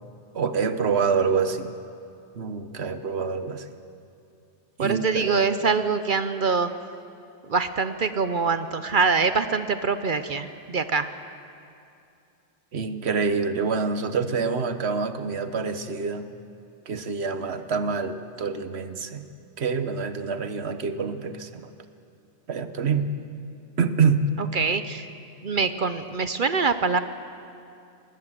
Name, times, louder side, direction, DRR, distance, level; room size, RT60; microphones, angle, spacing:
voice 1, 0.3-1.7 2.3-3.7 4.8-5.6 12.7-16.3 16.9-19.2 19.6-21.7 22.5-23.1 23.8-24.2, right 5 dB, 80° right, 10 dB, 1.3 m, -26 dB
voice 2, 4.8-6.7 7.5-11.1 24.5-25.1 25.4-27.0, right 5 dB, 55° right, 11 dB, 0.9 m, -24 dB
20.0 x 19.0 x 7.6 m, 2.6 s
omnidirectional pair, 1.1 m